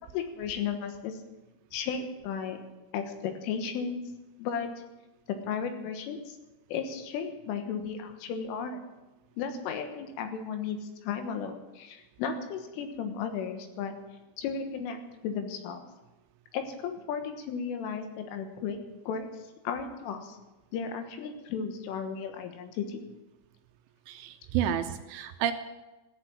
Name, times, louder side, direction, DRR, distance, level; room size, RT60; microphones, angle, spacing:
voice 1, 0.1-1.2 1.7-2.6 2.9-4.0 4.4-4.7 5.3-6.4 6.7-8.8 9.4-13.9 14.4-15.8 16.5-18.8 19.1-19.3 19.7-20.4 20.7-23.0, left 6 dB, 80° left, 7 dB, 3.8 m, -34 dB
voice 2, 24.1-25.5, right 10 dB, 80° right, 8 dB, 3.0 m, -30 dB
14.0 x 8.5 x 10.0 m, 1.1 s
omnidirectional pair, 5.9 m